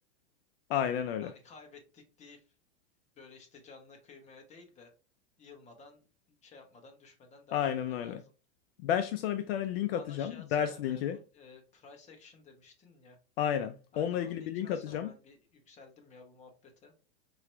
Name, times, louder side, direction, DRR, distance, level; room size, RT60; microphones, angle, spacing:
voice 1, 0.7-1.3 7.5-8.2 8.8-11.2 13.4-15.1, left 9 dB, 60° left, 0.5 m, -31 dB
voice 2, 1.2-2.5 3.1-4.9 5.4-8.3 9.9-13.2 13.9-16.9, left 4 dB, 20° left, 1.1 m, -54 dB
4.7 x 2.9 x 3.3 m
supercardioid pair, 140°, 34 cm